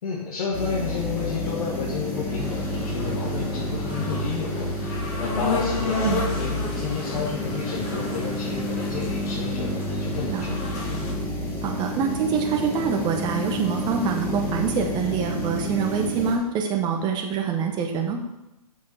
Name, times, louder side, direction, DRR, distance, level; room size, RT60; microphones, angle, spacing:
voice 1, 0.0-10.7, left 5 dB, 65° left, -5 dB, 2.3 m, -31 dB
sound 1, 0.5-16.4, left 1 dB, 10° left, 1.8 m, -29 dB
sound 2, 2.4-11.1, left 3 dB, 30° left, 2.3 m, -33 dB
voice 2, 11.6-18.2, right 6 dB, 20° right, 2 dB, 1.2 m, -25 dB
6.4 x 6.0 x 6.3 m, 0.93 s
hypercardioid pair, 135°, 20 cm